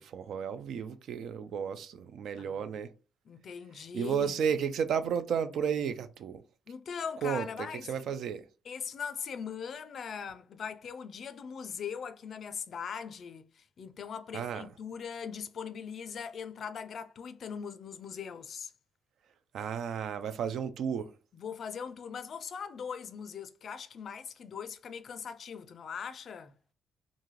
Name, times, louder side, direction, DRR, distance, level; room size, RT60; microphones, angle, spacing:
voice 1, 0.0-2.9 3.8-6.4 7.2-8.4 14.3-14.7 19.5-21.1, right 7 dB, 70° right, 0.4 m, -33 dB
voice 2, 3.3-4.3 6.7-8.1 8.7-18.7 21.3-26.5, left 7 dB, 55° left, 0.4 m, -40 dB
2.6 x 2.4 x 3.1 m
cardioid pair, 90°, 0 cm